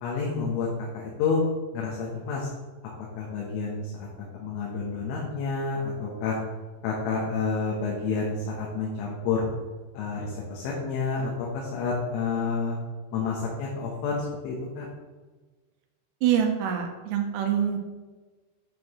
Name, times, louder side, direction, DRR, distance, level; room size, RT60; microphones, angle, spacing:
voice 1, 0.0-0.7 0.9-1.4 1.7-2.5 3.2-4.1 4.3-6.4 6.8-9.4 10.0-12.8 13.1-14.9, left 4 dB, 85° left, -3 dB, 3.6 m, -29 dB
voice 2, 16.2-17.8, right 9 dB, 80° right, 3 dB, 2.7 m, -25 dB
8.5 x 6.4 x 3.0 m, 1.3 s
omnidirectional pair, 5.5 m